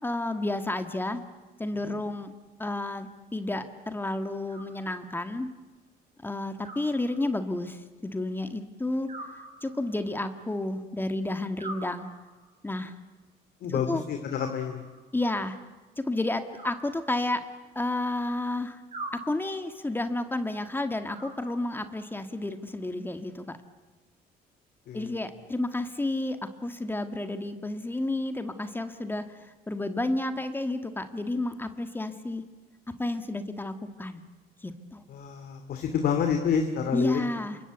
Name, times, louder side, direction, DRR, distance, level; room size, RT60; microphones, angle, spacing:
voice 1, 0.0-1.2 1.6-2.3 2.6-5.5 6.2-9.1 9.6-12.1 12.6-13.0 13.7-14.0 15.1-15.6 16.0-17.4 17.7-18.8 19.3-23.6 24.9-32.4 33.0-34.2 34.6-35.0 36.9-37.6, left 2 dB, 10° left, 9 dB, 1.7 m, -31 dB
Animal, 4.5-5.4 6.6-7.6 9.1-10.2 11.6-12.6 14.3-15.2 16.5-17.6 18.9-19.8 21.1-22.0, right 2 dB, 40° right, 7.0 m, -44 dB
voice 2, 13.6-14.8 24.9-25.1 35.1-37.2, left 7 dB, 65° left, 5 dB, 2.7 m, -28 dB
28.0 x 25.0 x 8.2 m, 1.2 s
cardioid pair, 110°, 17 cm